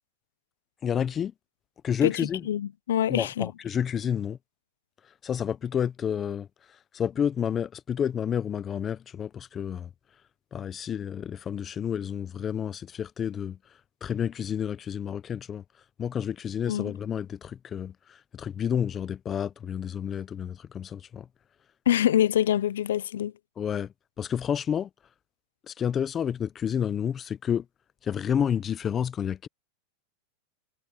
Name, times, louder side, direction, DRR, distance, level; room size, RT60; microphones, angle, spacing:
voice 1, 0.8-1.3 1.8-2.4 3.1-4.4 5.2-6.5 6.9-9.9 10.5-13.6 14.0-15.6 16.0-17.9 18.3-21.3 23.6-23.9 24.2-24.9 25.7-27.6 28.0-29.5, left 8 dB, 25° left, 0.6 m, -30 dB
voice 2, 2.0-3.5 16.6-16.9 21.9-23.3, left 11 dB, 90° left, 0.5 m, -25 dB
supercardioid pair, 140°, 0 cm